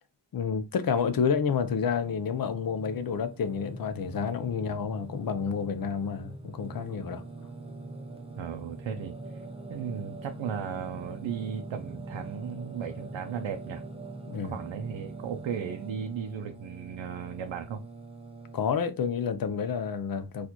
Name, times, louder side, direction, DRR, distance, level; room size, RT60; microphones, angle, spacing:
voice 1, 0.3-7.2 14.3-14.6 18.5-20.5, left 6 dB, 50° left, 0.5 m, -29 dB
Singing, 1.5-18.6, right 3 dB, 15° right, 0.4 m, -43 dB
voice 2, 8.4-9.4 9.7-13.8 14.4-17.8, right 7 dB, 85° right, 0.6 m, -36 dB
4.2 x 2.4 x 2.9 m
wide cardioid pair, 165°, 45 cm